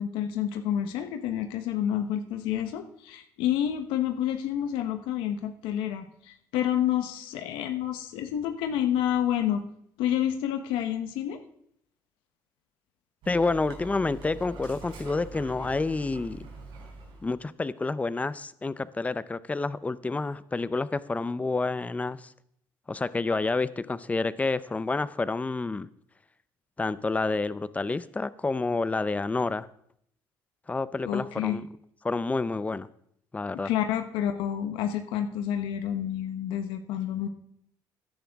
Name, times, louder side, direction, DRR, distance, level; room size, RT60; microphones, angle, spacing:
voice 1, 0.0-9.6 10.0-11.4 31.0-31.6 33.5-37.3, left 10 dB, 90° left, 6 dB, 1.0 m, -29 dB
Dog, 13.2-17.4, right 3 dB, 90° right, 3.9 m, -44 dB
voice 2, 13.3-16.5 17.2-22.3 22.9-25.9 26.8-29.7 30.7-31.6 32.0-32.9 33.3-33.7, left 3 dB, 15° left, 16 dB, 0.6 m, -29 dB
15.5 x 10.5 x 3.6 m, 0.69 s
cardioid pair, 100°, 8 cm